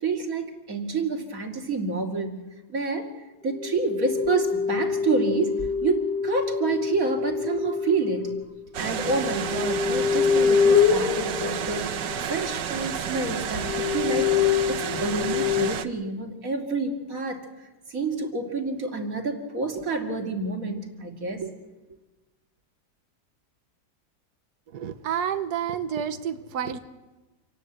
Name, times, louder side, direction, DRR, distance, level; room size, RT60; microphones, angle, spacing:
voice 1, 0.0-2.4 2.7-3.1 3.4-8.3 8.8-11.9 12.2-17.4 17.9-21.5, right 3 dB, 55° right, 3 dB, 2.9 m, -28 dB
sound 1, 3.4-8.4, left 4 dB, 5° left, 2.6 m, -28 dB
sound 2, 8.7-15.9, right 8 dB, 90° right, 1.6 m, -31 dB
sound 3, 8.9-12.6 13.1-13.2 13.6-15.7, left 7 dB, 85° left, 1.8 m, -23 dB
voice 2, 24.7-26.8, right 8 dB, 70° right, 9 dB, 1.7 m, -29 dB
27.0 x 19.0 x 8.0 m, 1.1 s
omnidirectional pair, 1.8 m